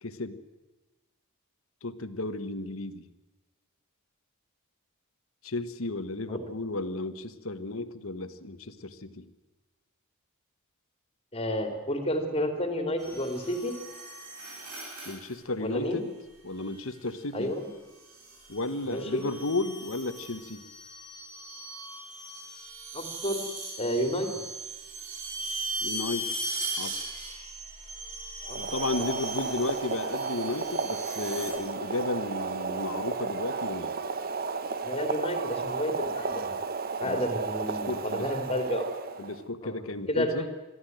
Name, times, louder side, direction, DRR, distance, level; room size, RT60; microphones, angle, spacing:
voice 1, 0.0-0.4 1.8-3.1 5.4-9.3 15.0-16.1 16.4-17.6 18.5-20.6 25.8-26.3 26.8-27.0 28.6-33.9 37.0-37.2 37.7-38.3 39.2-40.5, left 2 dB, 65° left, 11 dB, 1.3 m, -34 dB
voice 2, 11.3-13.7 15.6-16.0 17.3-17.7 18.9-19.2 22.9-23.5 23.8-24.3 28.5-28.6 34.8-36.5 37.0-38.8 39.6-39.8 40.1-40.5, equal, 25° left, 6 dB, 2.9 m, -30 dB
sound 1, 13.0-15.4 16.7-17.1 18.0-31.5, right 2 dB, 85° right, 7.9 m, -39 dB
Boiling, 28.4-39.4, right 4 dB, 45° right, 1.0 m, -33 dB
22.0 x 14.0 x 9.3 m, 1.1 s
head